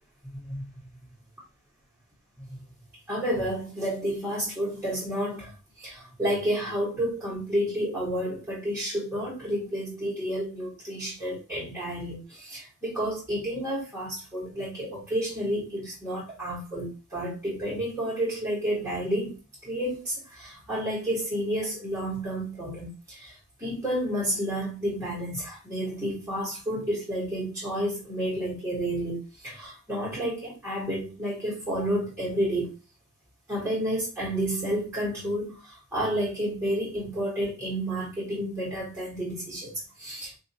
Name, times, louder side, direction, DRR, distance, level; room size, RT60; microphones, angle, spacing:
voice 1, 3.1-32.7 33.5-40.3, equal, 5° right, 1.3 m, -30 dB
4.9 x 2.6 x 2.7 m
head